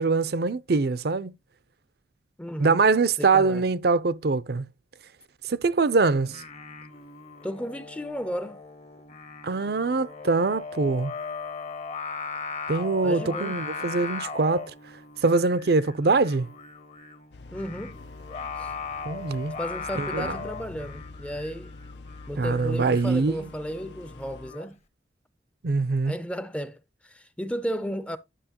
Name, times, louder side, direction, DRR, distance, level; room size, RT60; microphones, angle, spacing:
voice 1, 0.0-1.3 2.6-4.6 5.5-6.4 9.4-11.1 12.7-14.7 15.2-16.5 19.0-19.6 20.0-20.3 22.4-23.4 25.6-26.1, right 3 dB, 60° right, 0.6 m, -23 dB
voice 2, 2.4-2.9 3.2-3.6 7.4-8.6 13.0-13.6 17.5-18.0 18.6-18.8 19.6-21.7 22.3-24.8 26.0-28.2, equal, 5° left, 0.5 m, -34 dB
Singing, 6.2-24.7, left 4 dB, 35° left, 0.8 m, -39 dB
sound 1, 17.3-24.5, left 3 dB, 75° left, 0.5 m, -46 dB
10.0 x 6.3 x 2.9 m
head